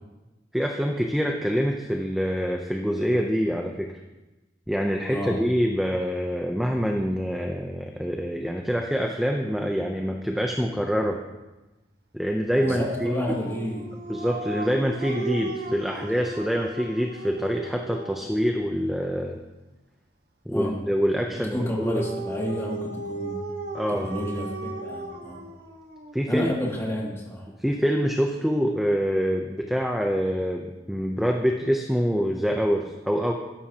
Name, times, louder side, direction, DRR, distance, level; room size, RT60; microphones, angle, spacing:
voice 1, 0.5-3.9 4.7-11.2 12.1-13.2 14.1-19.4 20.5-22.0 23.7-24.1 26.1-26.5 27.6-33.3, equal, ahead, 2 dB, 0.7 m, -25 dB
voice 2, 12.6-13.9 15.9-16.0 20.5-20.8 21.3-23.4 23.9-25.4 26.3-27.5, left 1 dB, 15° left, -3 dB, 2.5 m, -30 dB
Dog, 12.6-18.4 21.6-26.1, right 2 dB, 55° right, 1.5 m, -36 dB
20.5 x 11.0 x 2.9 m, 1.1 s
head